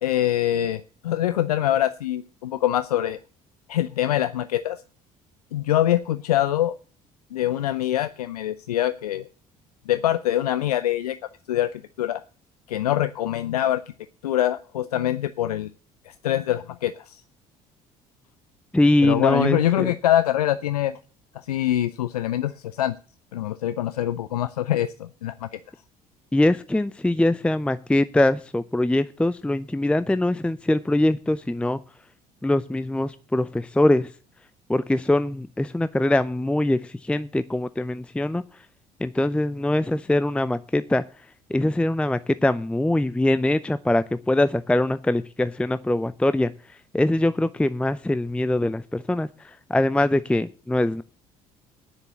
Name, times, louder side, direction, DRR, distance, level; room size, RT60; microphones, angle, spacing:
voice 1, 0.0-3.2 3.7-4.8 5.5-6.7 7.3-9.3 9.9-11.2 11.5-11.7 12.0-12.2 12.7-13.8 14.2-15.7 16.1-17.2 19.0-21.0 21.3-22.9 23.3-25.6, left 12 dB, 75° left, 14 dB, 0.5 m, -24 dB
voice 2, 18.7-19.9 26.3-31.8 32.4-34.1 34.7-38.4 39.0-41.0 41.5-46.5 46.9-51.0, left 1 dB, 5° left, 14 dB, 0.6 m, -23 dB
10.0 x 6.8 x 8.3 m, 0.38 s
figure-of-eight pair, 55°, 20 cm